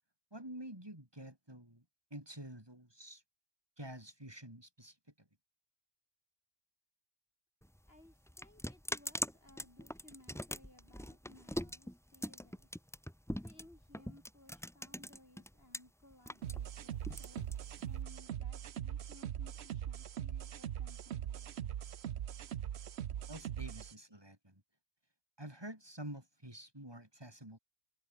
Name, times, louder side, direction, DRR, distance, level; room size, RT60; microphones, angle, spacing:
voice 1, 0.3-1.8 2.1-3.2 3.8-5.0 23.3-24.6 25.4-27.6, right 1 dB, 20° right, 5.8 m, -48 dB
sound 1, 7.6-15.8 16.1-18.0, equal, 5° left, 1.3 m, -42 dB
voice 2, 7.9-12.8 13.4-17.4 17.8-21.5 23.2-23.3, left 1 dB, 65° left, 7.3 m, -61 dB
sound 2, 16.4-23.9, right 10 dB, 75° right, 1.0 m, -41 dB
omnidirectional pair, 1.1 m